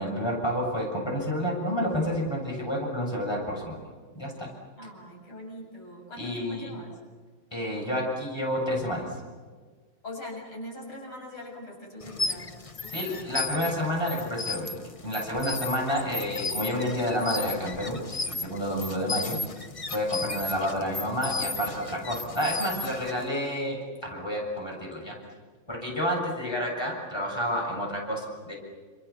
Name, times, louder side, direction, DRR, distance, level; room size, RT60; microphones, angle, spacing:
voice 1, 0.0-3.8 4.1-4.5 6.2-6.7 7.5-9.1 12.9-19.4 19.9-25.2 25.7-28.5, equal, 10° left, -1 dB, 7.0 m, -30 dB
voice 2, 4.8-6.9 10.0-13.3 20.2-20.5, left 1 dB, 90° left, 0 dB, 8.0 m, -42 dB
sound 1, 12.0-23.3, left 3 dB, 50° left, 0.4 m, -35 dB
29.5 x 27.5 x 7.1 m, 1.5 s
omnidirectional pair, 2.3 m